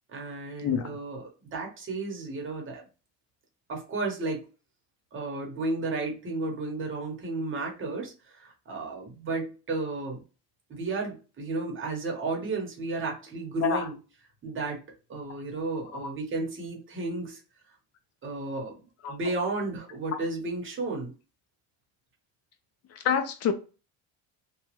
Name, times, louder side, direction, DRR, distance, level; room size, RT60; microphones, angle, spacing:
voice 1, 0.1-2.8 3.7-4.5 5.1-10.2 10.7-14.0 14.4-14.8 15.1-17.4 18.2-18.8 19.1-21.1, right 3 dB, 30° right, 0.9 m, -33 dB
voice 2, 0.6-1.0 13.6-13.9 15.9-16.1 19.0-19.2 22.9-23.5, left 7 dB, 40° left, 0.4 m, -27 dB
2.9 x 2.2 x 2.9 m
cardioid pair, 145°, 43 cm